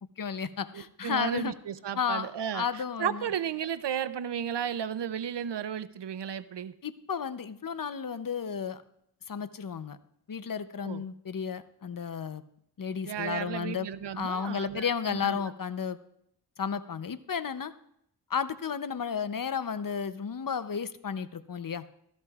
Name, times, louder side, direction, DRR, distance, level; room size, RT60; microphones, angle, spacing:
voice 1, 0.2-1.5 1.9-3.3 6.8-8.8 9.3-10.0 10.3-12.4 12.8-13.9 14.1-16.0 16.6-17.7 18.3-21.8, left 6 dB, 55° left, 13 dB, 0.7 m, -33 dB
voice 2, 0.7-6.7 10.8-11.0 13.0-15.4, right 9 dB, 85° right, 14 dB, 0.6 m, -34 dB
16.0 x 13.5 x 2.4 m, 0.72 s
cardioid pair, 45°, 41 cm